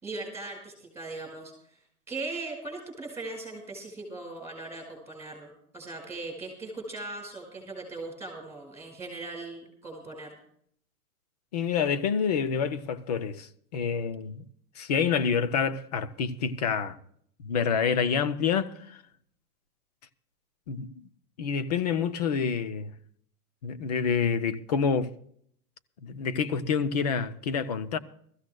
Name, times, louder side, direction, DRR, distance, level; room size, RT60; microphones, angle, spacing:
voice 1, 0.0-1.8 2.1-10.4, right 2 dB, 5° right, 5.1 m, -39 dB
voice 2, 11.5-14.5 14.8-17.0 17.4-19.0 20.7-21.0 21.4-22.9 23.6-25.1 26.0-28.0, left 6 dB, 30° left, 0.5 m, -28 dB
22.5 x 14.5 x 2.2 m
hypercardioid pair, 160°, 45 cm